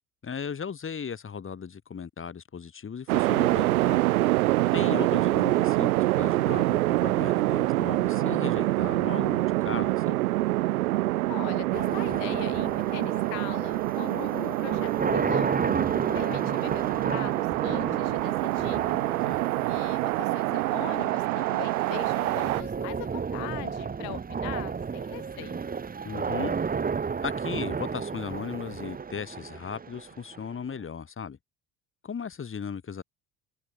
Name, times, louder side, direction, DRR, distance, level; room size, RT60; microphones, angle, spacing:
voice 1, 0.2-4.0 4.7-10.2 19.2-19.4 26.0-26.5 27.2-31.4 32.0-33.0, left 6 dB, 25° left, 3.9 m, -37 dB
sound 1, 3.1-22.6, right 18 dB, 70° right, 0.5 m, -26 dB
voice 2, 11.3-15.5 16.1-18.8 19.7-25.7, left 31 dB, 60° left, 4.0 m, -41 dB
sound 2, 11.7-30.7, right 5 dB, 20° right, 1.5 m, -33 dB
figure-of-eight pair, 60°, 45 cm